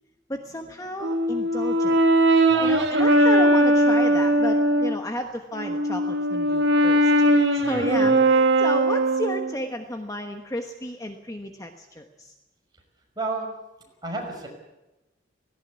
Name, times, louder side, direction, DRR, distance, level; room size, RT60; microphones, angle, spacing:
voice 1, 0.3-2.0 2.6-12.3, left 1 dB, 20° left, 5 dB, 1.1 m, -33 dB
Brass instrument, 1.0-5.0 5.5-9.6, right 1 dB, 65° right, 2.0 m, -20 dB
voice 2, 2.5-2.9 7.6-8.2 13.2-13.5 14.0-14.5, right 3 dB, 20° right, 0 dB, 5.7 m, -32 dB
17.5 x 17.5 x 9.6 m, 1.0 s
head